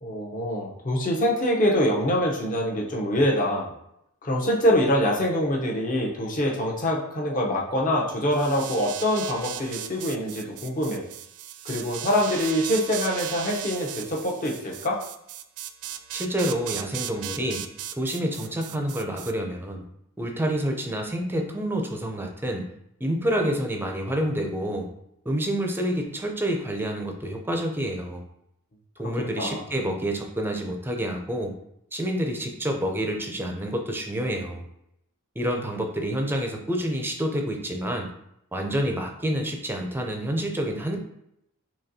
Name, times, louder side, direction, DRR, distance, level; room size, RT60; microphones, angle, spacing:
voice 1, 0.0-3.7 4.2-11.1 11.6-15.0 29.2-29.6, equal, 40° left, -2 dB, 0.8 m, -25 dB
sound 1, 8.3-19.3, right 11 dB, 80° right, 0.3 m, -37 dB
voice 2, 16.1-17.7 18.0-19.8 20.2-22.7 23.0-24.9 25.3-28.2 29.0-31.6 31.9-34.7 35.4-38.1 38.5-41.0, right 1 dB, 10° right, 3 dB, 0.4 m, -28 dB
4.1 x 2.9 x 2.7 m, 0.78 s
head